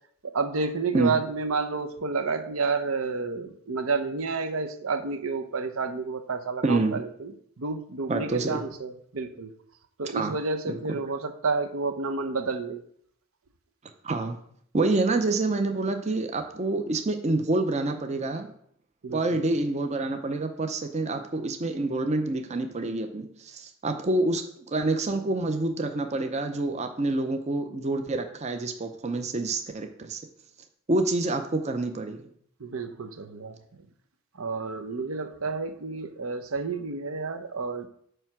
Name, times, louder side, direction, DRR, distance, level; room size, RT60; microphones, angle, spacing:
voice 1, 0.2-7.3 7.6-9.5 10.0-12.8 19.0-19.4 32.6-33.6 34.4-37.9, right 4 dB, 80° right, 8 dB, 0.8 m, -30 dB
voice 2, 6.6-7.0 8.1-8.6 10.1-10.4 10.7-11.0 14.0-14.4 14.7-18.5 19.1-30.2 30.9-32.3, right 2 dB, 30° right, 6 dB, 0.6 m, -27 dB
9.0 x 3.3 x 6.0 m, 0.65 s
head